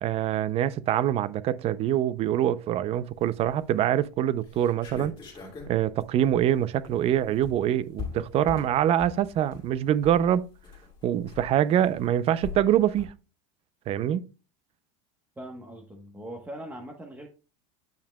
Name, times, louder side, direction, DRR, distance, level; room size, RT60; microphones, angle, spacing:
voice 1, 0.0-5.1 5.7-10.5 11.0-13.1 13.9-14.3, right 11 dB, 35° right, 0.5 m, -24 dB
sound 1, 3.3-3.7 4.1-4.2 4.4-13.1, left 6 dB, 25° left, 2.3 m, -42 dB
voice 2, 15.4-17.3, right 1 dB, 10° right, 1.1 m, -41 dB
9.0 x 5.7 x 2.2 m
supercardioid pair, 135°, 17 cm